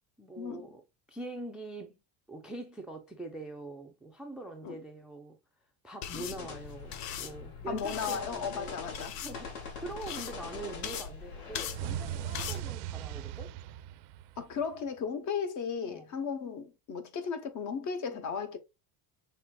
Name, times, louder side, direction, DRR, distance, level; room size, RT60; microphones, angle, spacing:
voice 1, 0.2-0.8 1.1-2.0 2.3-5.4 5.8-8.8 9.1-13.5 15.8-16.2 18.1-18.3, right 2 dB, ahead, 0.3 m, -44 dB
sound 1, 6.0-12.6, left 8 dB, 85° left, 0.8 m, -41 dB
sound 2, 6.4-12.7, left 4 dB, 65° left, 2.0 m, -46 dB
voice 2, 7.7-9.1 14.4-18.6, left 6 dB, 45° left, 0.9 m, -35 dB
sound 3, 11.7-14.8, right 12 dB, 65° right, 0.5 m, -39 dB
5.9 x 3.3 x 2.2 m
cardioid pair, 145°, 43 cm